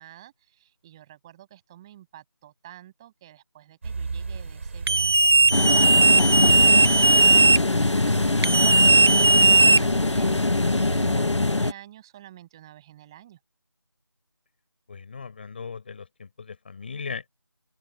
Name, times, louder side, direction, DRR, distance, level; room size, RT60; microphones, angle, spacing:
voice 1, 0.0-5.3 5.8-7.3 7.7-13.4, right 13 dB, 10° right, 7.7 m, -48 dB
sound 1, 3.8-11.2, right 4 dB, 25° right, 5.6 m, -36 dB
sound 2, 4.9-7.6 8.4-10.2, right 3 dB, 60° right, 1.0 m, -17 dB
sound 3, 5.5-11.7, left 2 dB, 85° left, 1.3 m, -23 dB
voice 2, 14.9-17.3, left 5 dB, 20° left, 5.2 m, -38 dB
open air
figure-of-eight pair, 175°, 15 cm